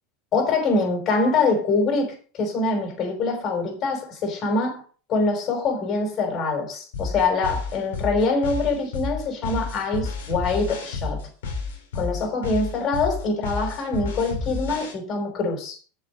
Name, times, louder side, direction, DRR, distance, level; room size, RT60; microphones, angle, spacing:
voice 1, 0.3-4.8 5.1-11.2 11.9-15.7, left 3 dB, 40° left, 5.1 m, -24 dB
sound 1, 6.9-14.9, left 4 dB, 70° left, 3.6 m, -30 dB
7.7 x 7.0 x 6.4 m
hypercardioid pair, 85°, 0 cm